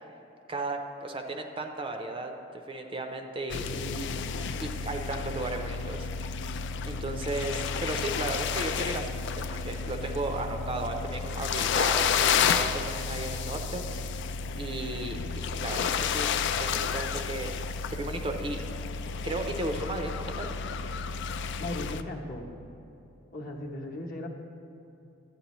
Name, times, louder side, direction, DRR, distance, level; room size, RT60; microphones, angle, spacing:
voice 1, 0.5-3.7 4.6-6.3 6.8-14.2 14.5-16.3 16.6-17.5 17.9-18.6 19.2-20.5, right 2 dB, 25° right, 5 dB, 0.5 m, -35 dB
sound 1, 3.5-22.0, left 6 dB, 60° left, 0.3 m, -31 dB
voice 2, 3.5-4.3 21.6-22.5 23.3-24.3, left 1 dB, 45° left, 0 dB, 0.9 m, -37 dB
11.5 x 8.6 x 3.0 m, 2.9 s
head